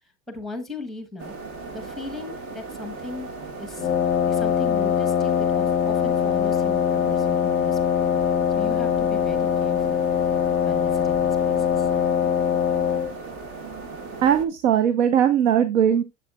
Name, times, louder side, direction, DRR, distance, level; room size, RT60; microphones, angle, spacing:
voice 1, 0.3-1.3 1.7-3.3 3.6-3.9 4.3-7.9 8.5-10.0 10.6-11.9, left 2 dB, ahead, 8 dB, 1.0 m, -38 dB
sound 1, 1.2-14.4, right 3 dB, 50° right, 1.5 m, -37 dB
Wind instrument woodwind instrument, 3.8-13.1, left 8 dB, 25° left, 0.6 m, -22 dB
voice 2, 14.2-16.0, right 9 dB, 85° right, 10 dB, 0.9 m, -19 dB
7.9 x 7.4 x 2.3 m, 0.23 s
supercardioid pair, 145°, 39 cm